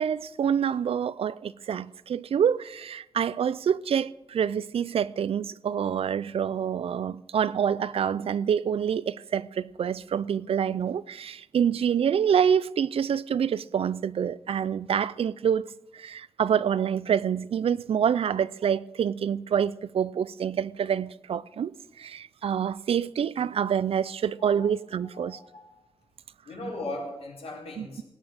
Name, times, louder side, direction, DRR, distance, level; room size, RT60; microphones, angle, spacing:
voice 1, 0.0-21.7 22.0-25.4 27.8-28.0, right 8 dB, 70° right, 0.5 m, -27 dB
voice 2, 24.4-24.7 25.1-25.7 26.4-28.0, left 2 dB, 80° left, 4.2 m, -38 dB
17.5 x 9.3 x 6.3 m
wide cardioid pair, 155°, 10 cm